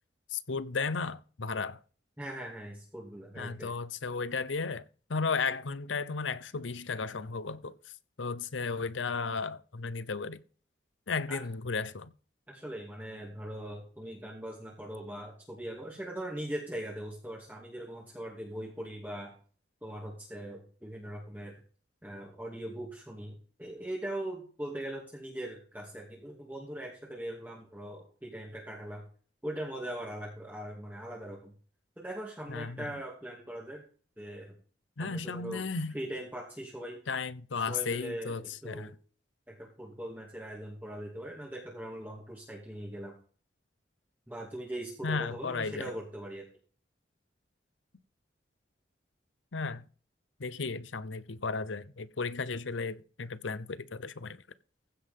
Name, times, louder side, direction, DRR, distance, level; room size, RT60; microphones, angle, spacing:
voice 1, 0.3-1.8 3.4-4.8 5.1-7.7 8.2-10.4 11.1-12.1 32.5-32.9 35.0-36.0 37.1-38.9 45.0-45.9 49.5-49.8 50.4-54.4, left 4 dB, 90° left, 0.8 m, -34 dB
voice 2, 2.2-3.7 11.3-11.4 12.5-19.3 19.8-21.5 22.0-29.0 29.4-31.5 32.0-33.8 34.2-34.5 35.0-35.6 35.9-37.0 37.5-38.9 39.5-43.2 44.3-46.4, right 1 dB, 10° right, 2.6 m, -40 dB
15.5 x 5.6 x 5.3 m
head